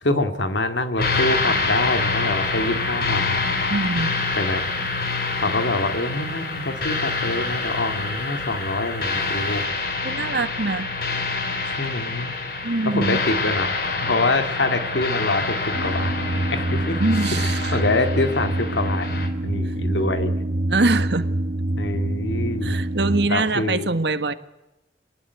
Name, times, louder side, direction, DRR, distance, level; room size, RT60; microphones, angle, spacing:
voice 1, 0.0-3.4 4.4-4.6 5.4-9.7 11.8-12.3 12.9-13.7 14.0-17.0 17.3-20.3 21.8-22.8 23.3-23.9, left 2 dB, 85° left, 8 dB, 2.2 m, -25 dB
sound 1, 1.0-19.3, left 3 dB, 55° left, 3.5 m, -26 dB
voice 2, 3.7-4.2 10.0-10.9 12.6-13.2 17.0-17.8 19.6-19.7 20.7-21.3 22.6-24.3, right 3 dB, 70° right, 11 dB, 1.4 m, -23 dB
sound 2, 15.7-23.3, right 1 dB, 45° right, 1.0 m, -25 dB
25.5 x 19.5 x 9.5 m, 0.99 s
head